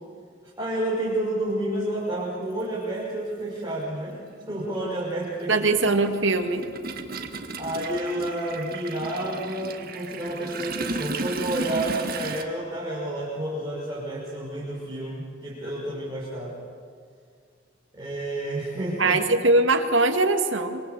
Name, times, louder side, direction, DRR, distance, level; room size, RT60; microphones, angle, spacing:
voice 1, 0.6-4.2 4.5-5.7 7.6-16.6 17.9-19.2, right 1 dB, 20° right, -7 dB, 6.2 m, -30 dB
Toilet flush, 1.9-2.0 3.3-3.5 3.8-12.4, right 3 dB, 50° right, 2.0 m, -35 dB
voice 2, 5.5-6.6 19.0-20.8, right 2 dB, 75° right, 6 dB, 2.4 m, -21 dB
26.5 x 26.5 x 8.4 m, 2.1 s
head